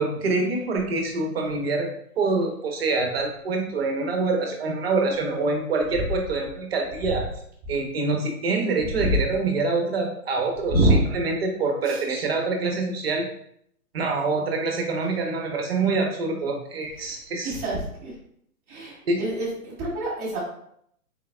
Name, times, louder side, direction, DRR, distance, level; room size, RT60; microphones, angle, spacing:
voice 1, 0.0-1.9 2.2-7.3 7.7-13.2 13.9-17.5 19.1-19.2, right 3 dB, 45° right, 2 dB, 0.8 m, -25 dB
voice 2, 10.7-11.0 11.8-12.0 16.9-18.1 18.7-20.4, right 1 dB, 5° right, -11 dB, 0.6 m, -25 dB
4.1 x 3.6 x 2.3 m, 0.69 s
hypercardioid pair, 145°, 44 cm